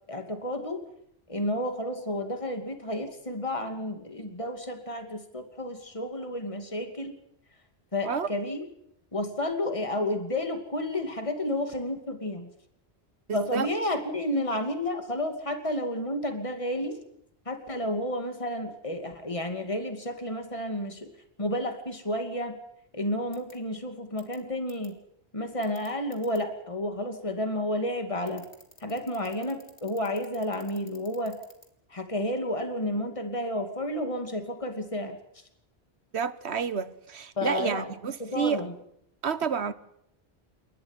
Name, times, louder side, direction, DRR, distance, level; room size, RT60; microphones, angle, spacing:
voice 1, 0.1-0.8 1.3-7.2 7.9-8.7 9.1-12.5 13.3-17.0 17.5-21.1 21.4-22.5 22.9-25.0 25.3-28.5 28.8-31.4 31.9-35.2 37.4-37.9 38.2-38.7, left 1 dB, 30° left, 2.7 m, -31 dB
voice 2, 13.3-13.7 36.1-38.6 39.2-39.7, right 7 dB, 80° right, 1.5 m, -29 dB
sound 1, 23.3-23.5 24.2-24.4 24.7-24.9 25.6-26.4 28.3-31.7, left 3 dB, 85° left, 3.5 m, -51 dB
28.5 x 13.5 x 9.9 m
omnidirectional pair, 1.1 m